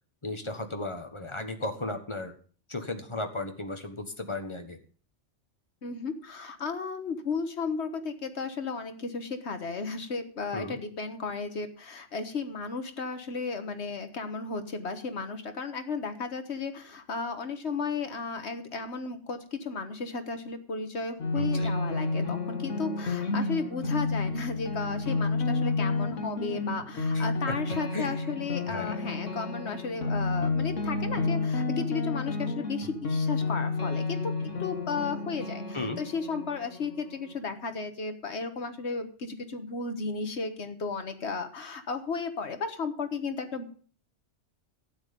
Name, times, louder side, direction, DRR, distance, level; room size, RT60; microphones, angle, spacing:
voice 1, 0.2-2.3 2.7-4.8 10.5-10.8 21.3-21.7 27.1-27.5 27.9-28.1 28.7-29.0 35.7-36.0, left 2 dB, 25° left, 6 dB, 1.4 m, -35 dB
voice 2, 5.8-34.2 34.6-43.8, left 4 dB, 65° left, 8 dB, 1.6 m, -34 dB
sound 1, 21.2-37.4, left 3 dB, 85° left, 2.2 m, -31 dB
12.0 x 9.2 x 5.3 m, 0.43 s
omnidirectional pair, 1.2 m